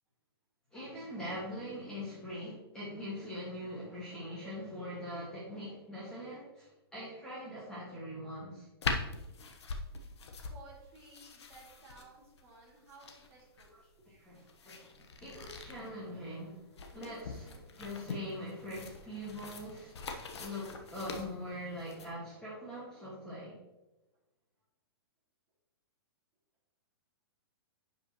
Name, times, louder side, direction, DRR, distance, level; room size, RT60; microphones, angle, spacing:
voice 1, 0.7-8.7 14.1-16.6 16.9-23.6, equal, 5° left, -8 dB, 1.7 m, -42 dB
sound 1, 8.8-22.1, left 4 dB, 90° left, 1.1 m, -43 dB
voice 2, 10.5-13.7, right 3 dB, 20° right, -5 dB, 2.4 m, -56 dB
10.5 x 5.4 x 3.0 m, 1.0 s
hypercardioid pair, 160°, 14 cm